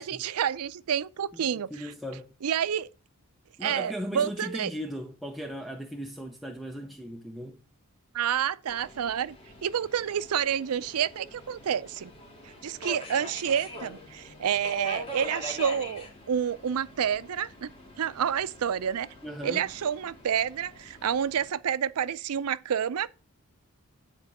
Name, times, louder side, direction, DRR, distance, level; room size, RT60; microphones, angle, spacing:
voice 1, 0.0-1.7 2.4-2.9 3.6-4.7 8.1-9.4 9.6-12.1 12.4-17.7 18.0-19.1 19.4-23.1, right 8 dB, 80° right, 0.4 m, -29 dB
voice 2, 1.3-2.3 3.6-7.6 19.2-19.7, equal, ahead, 0.5 m, -38 dB
Subway metro underground, 8.7-21.5, left 1 dB, 25° left, 2.2 m, -43 dB
9.8 x 4.4 x 6.0 m
head